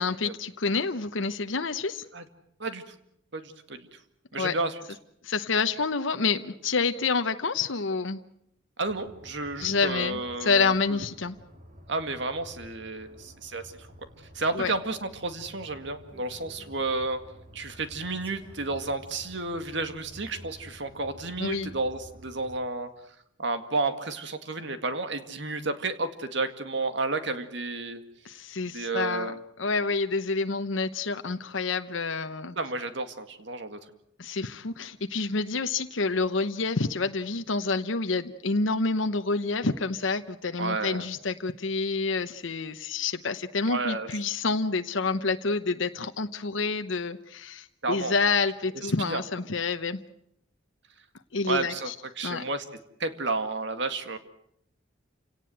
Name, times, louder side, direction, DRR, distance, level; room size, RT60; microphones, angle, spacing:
voice 1, 0.0-2.0 4.4-4.5 5.2-8.2 9.6-11.4 14.5-14.7 21.4-21.7 28.2-29.3 29.6-32.6 34.2-50.0 51.3-51.9 52.2-52.4, left 4 dB, 75° left, 8 dB, 0.9 m, -28 dB
voice 2, 2.6-2.9 3.3-4.0 4.3-4.8 8.8-11.0 11.9-13.7 14.3-17.2 17.5-22.9 23.4-28.0 28.7-29.4 32.6-33.8 40.6-41.1 43.7-44.1 47.8-48.1 48.8-49.2 51.4-52.6 53.0-54.2, right 3 dB, 65° right, 8 dB, 2.1 m, -31 dB
sound 1, 8.9-22.6, equal, 40° right, 3.7 m, -50 dB
Female speech woman speaking, 16.1-16.8 17.9-19.3 19.9-20.8, equal, 10° left, 4.3 m, -57 dB
28.5 x 18.0 x 7.9 m, 0.75 s
head